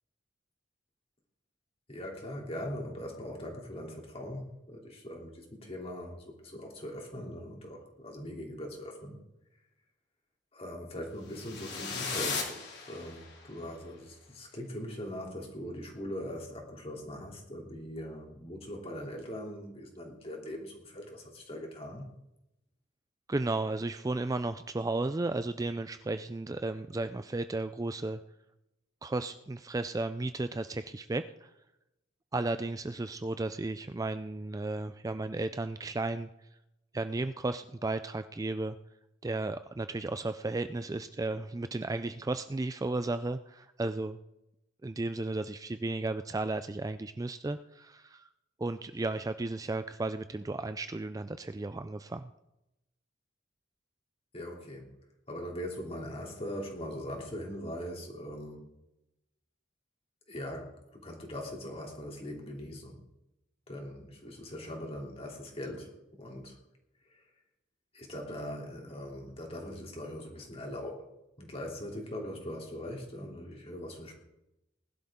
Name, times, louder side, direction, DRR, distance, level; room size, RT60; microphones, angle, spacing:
voice 1, 1.9-9.2 10.5-22.0 54.3-54.9 55.3-58.7 60.3-63.0 63.7-66.6 67.1-67.3 67.9-71.1 71.4-74.2, equal, 30° left, 0 dB, 3.0 m, -41 dB
sound 1, 11.3-13.5, left 5 dB, 55° left, 3.2 m, -36 dB
voice 2, 23.3-28.2 29.0-31.5 32.3-36.3 36.9-38.8 39.2-44.2 44.8-48.2 48.6-52.3, right 2 dB, 20° right, 10 dB, 0.4 m, -34 dB
20.0 x 11.5 x 3.7 m, 0.89 s
head